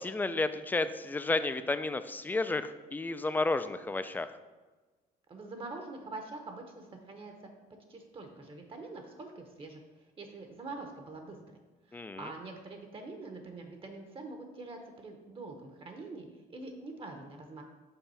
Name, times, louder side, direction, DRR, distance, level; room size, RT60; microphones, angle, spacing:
voice 1, 0.0-4.3 11.9-12.3, left 3 dB, 10° left, 11 dB, 0.3 m, -32 dB
voice 2, 5.3-7.3 7.9-9.8 10.2-11.4 11.9-17.6, right 3 dB, 30° right, 4 dB, 0.8 m, -44 dB
5.7 x 3.6 x 5.5 m, 1.3 s
cardioid pair, 110°, 17 cm